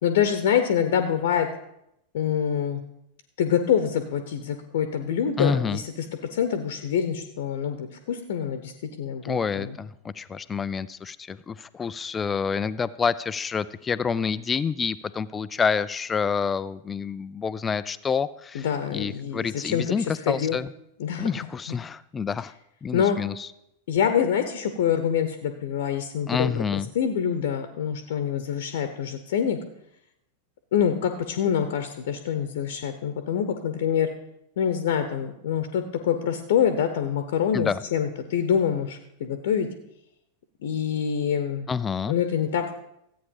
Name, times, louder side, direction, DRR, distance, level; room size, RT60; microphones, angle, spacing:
voice 1, 0.0-1.5 2.1-2.8 3.4-5.8 6.3-8.7 9.0-9.8 18.5-19.8 20.3-20.6 21.0-21.3 22.9-23.2 23.9-26.6 26.9-29.6 30.7-34.1 34.6-39.7 40.6-41.7 42.1-42.7, left 8 dB, 55° left, 8 dB, 0.9 m, -25 dB
voice 2, 5.4-5.8 9.2-20.7 21.2-22.5 22.8-23.5 26.3-26.9 37.5-37.8 41.7-42.1, left 6 dB, 20° left, 16 dB, 0.4 m, -28 dB
14.0 x 8.6 x 5.2 m, 0.80 s
figure-of-eight pair, 90°, 0 cm